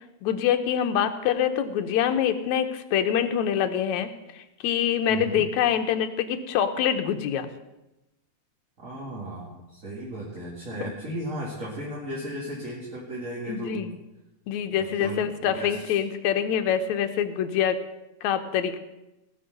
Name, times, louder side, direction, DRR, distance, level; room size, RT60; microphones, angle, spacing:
voice 1, 0.2-7.5 13.5-14.0 14.5-17.8 18.2-18.8, left 9 dB, 75° left, 8 dB, 2.2 m, -25 dB
voice 2, 5.1-5.4 8.8-13.8 14.8-16.0, right 1 dB, 30° right, -5 dB, 2.3 m, -35 dB
19.0 x 6.3 x 6.6 m, 0.95 s
omnidirectional pair, 3.4 m